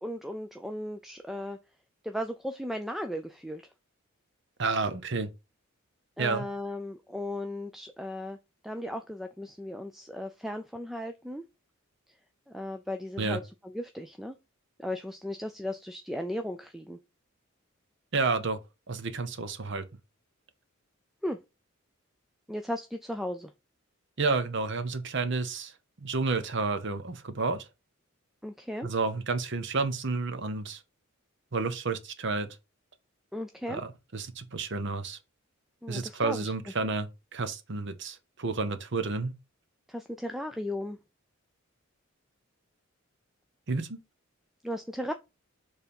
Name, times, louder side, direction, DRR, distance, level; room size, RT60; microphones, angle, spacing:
voice 1, 0.0-1.6 2.0-3.6 6.2-8.4 8.6-11.4 12.5-14.4 14.8-17.0 21.2-21.4 22.5-23.5 28.4-28.9 33.3-33.8 35.8-36.5 39.9-41.0 44.6-45.1, left 1 dB, ahead, 0.3 m, -36 dB
voice 2, 4.6-5.3 6.2-6.5 13.2-13.4 18.1-18.6 18.9-19.8 24.2-25.7 26.0-27.7 28.8-30.8 31.5-32.5 33.7-35.2 35.9-39.3 43.7-44.0, right 4 dB, 55° right, 0.9 m, -30 dB
6.8 x 3.4 x 5.2 m
head